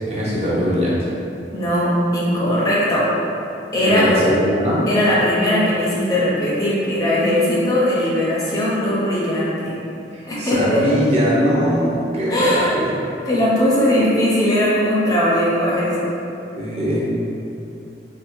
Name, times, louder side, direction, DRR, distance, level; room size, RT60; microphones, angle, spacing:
voice 1, 0.1-1.0 3.8-4.8 10.1-12.9 16.6-17.1, equal, 35° right, -7 dB, 0.6 m, -20 dB
voice 2, 1.5-3.1 3.7-4.1 4.9-9.7 10.3-10.8 12.3-12.8 13.3-16.1, left 1 dB, 20° left, -7 dB, 0.5 m, -19 dB
4.2 x 2.1 x 2.6 m, 2.7 s
head